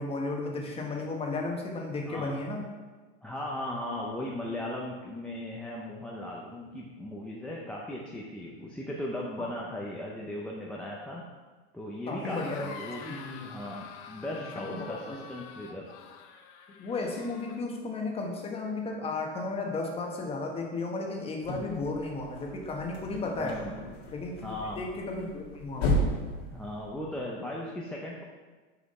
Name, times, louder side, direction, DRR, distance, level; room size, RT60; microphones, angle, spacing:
voice 1, 0.0-2.6 9.4-9.5 12.1-13.5 14.5-15.2 16.8-23.6 24.1-24.4 24.8-26.0, left 3 dB, 20° left, 1 dB, 1.2 m, -34 dB
voice 2, 2.1-2.4 3.2-11.2 11.7-15.9 23.4-23.8 24.4-24.8 26.5-28.2, left 1 dB, 5° left, -4 dB, 0.6 m, -37 dB
sound 1, 12.2-17.6, left 6 dB, 45° left, 0.8 m, -46 dB
sound 2, 21.4-27.3, equal, 80° left, 2.2 m, -34 dB
6.8 x 5.0 x 5.3 m, 1.3 s
supercardioid pair, 145°, 31 cm